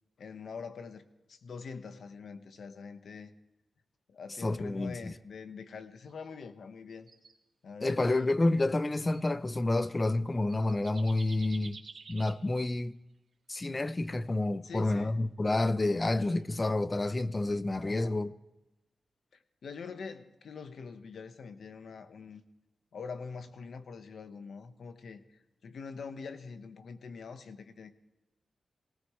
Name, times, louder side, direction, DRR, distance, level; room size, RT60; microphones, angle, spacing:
voice 1, 0.2-3.3 4.1-7.1 7.6-8.3 14.6-15.2 15.9-16.0 17.8-18.2 19.6-22.4 22.9-25.2 25.6-27.9, left 5 dB, 85° left, 1.2 m, -44 dB
voice 2, 4.4-5.1 7.8-11.8 12.1-13.0 13.5-18.3, left 2 dB, 30° left, 0.6 m, -29 dB
sound 1, 6.1-6.3 6.9-7.3 8.3-8.5 9.1-9.3 10.1-10.2 10.5-12.4 14.6-14.9 16.4-16.6, right 4 dB, 70° right, 2.0 m, -51 dB
23.5 x 18.0 x 3.2 m
wide cardioid pair, 85°, 0 cm